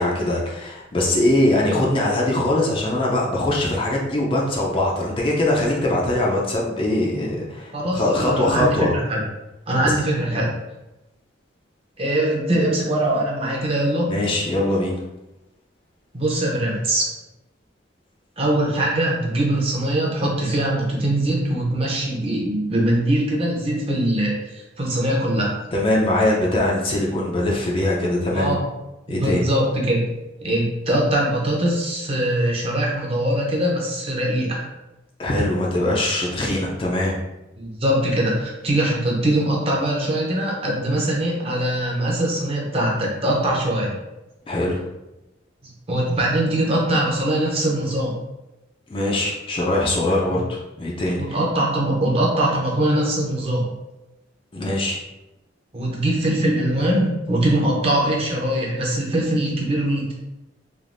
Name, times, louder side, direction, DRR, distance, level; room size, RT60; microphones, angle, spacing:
voice 1, 0.0-8.9 9.9-10.0 10.3-10.5 14.1-15.0 25.7-28.6 29.1-29.5 35.2-37.1 44.5-44.8 48.9-51.2 54.5-55.0, left 1 dB, 30° left, -3 dB, 0.4 m, -22 dB
voice 2, 7.7-9.2 9.7-10.5 12.0-14.1 16.1-17.1 18.4-25.5 28.3-28.6 29.1-30.0 30.4-34.7 37.6-44.0 45.6-48.1 50.3-50.4 51.2-53.6 55.7-60.1, right 1 dB, 30° right, -3 dB, 0.7 m, -22 dB
3.3 x 2.4 x 2.5 m, 0.98 s
head